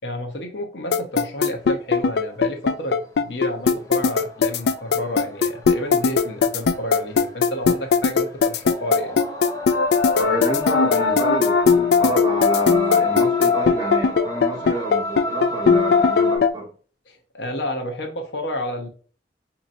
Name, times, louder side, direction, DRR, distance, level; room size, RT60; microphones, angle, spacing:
voice 1, 0.0-9.2 17.1-18.9, equal, 80° left, 0.9 m, -31 dB
sound 1, 0.9-16.5, left 5 dB, 60° left, 0.3 m, -18 dB
sound 2, 1.9-2.0 2.8-3.0 3.5-16.4, left 1 dB, 20° left, 0.7 m, -31 dB
voice 2, 10.2-16.7, right 2 dB, 25° right, 1.4 m, -28 dB
5.0 x 2.9 x 2.6 m
head